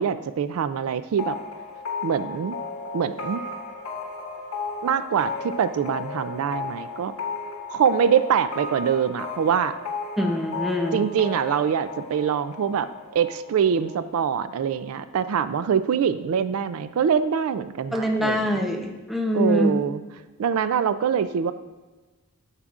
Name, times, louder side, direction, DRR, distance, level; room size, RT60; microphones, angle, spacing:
voice 1, 0.0-1.4 2.0-2.6 2.9-3.4 4.8-7.1 7.7-9.7 10.9-12.9 13.1-18.6 19.3-20.0 20.4-21.5, right 7 dB, 75° right, 13 dB, 0.3 m, -24 dB
sound 1, 1.2-14.7, left 4 dB, 80° left, 1.2 m, -35 dB
voice 2, 10.2-11.0 17.9-19.8, equal, ahead, 2 dB, 0.6 m, -24 dB
9.9 x 7.3 x 2.4 m, 1.2 s
head